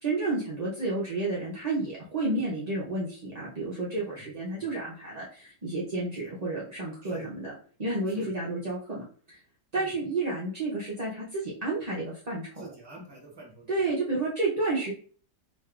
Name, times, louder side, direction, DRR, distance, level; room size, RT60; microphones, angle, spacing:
voice 1, 0.0-7.5 7.8-9.4 9.7-12.5 13.7-14.9, right 2 dB, 40° right, -7 dB, 0.5 m, -31 dB
voice 2, 4.0-4.4 6.2-6.3 7.0-7.3 8.1-8.3 9.8-9.9 12.6-13.9, right 3 dB, 20° right, -1 dB, 0.8 m, -47 dB
4.1 x 3.2 x 2.4 m, 0.44 s
omnidirectional pair, 1.8 m